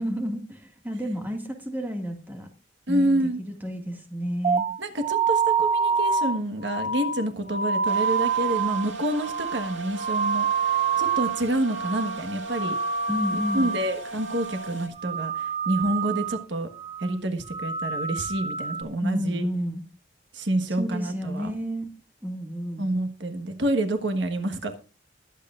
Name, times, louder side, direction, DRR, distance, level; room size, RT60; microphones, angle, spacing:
voice 1, 0.0-2.5 2.9-4.6 13.1-13.7 19.0-19.8 20.7-21.9 22.2-22.9, equal, 10° right, 3 dB, 2.0 m, -31 dB
voice 2, 2.9-3.4 4.8-12.8 13.5-16.7 17.0-19.4 20.3-21.6 22.8-24.8, right 1 dB, 70° right, 6 dB, 1.5 m, -28 dB
sound 1, 4.4-11.4 11.7-12.2 12.5-13.9 14.2-14.7 15.0-16.4 16.8-17.1 17.5-18.8, right 5 dB, 35° right, 0.7 m, -27 dB
sound 2, 7.8-14.9, right 2 dB, 90° right, 2.0 m, -37 dB
21.0 x 8.4 x 2.5 m, 0.33 s
head